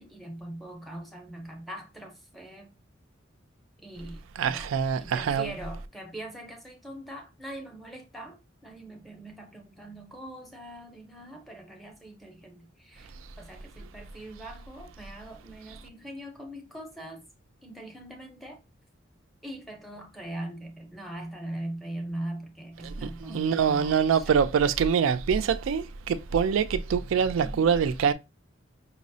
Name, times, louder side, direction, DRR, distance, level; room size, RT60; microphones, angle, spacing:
voice 1, 0.0-2.7 3.8-4.7 5.0-17.2 17.6-18.6 19.4-24.4 27.4-27.7, right 1 dB, ahead, 0.6 m, -41 dB
voice 2, 4.4-5.5 22.8-28.1, right 7 dB, 80° right, 0.3 m, -25 dB
5.3 x 2.0 x 2.6 m
head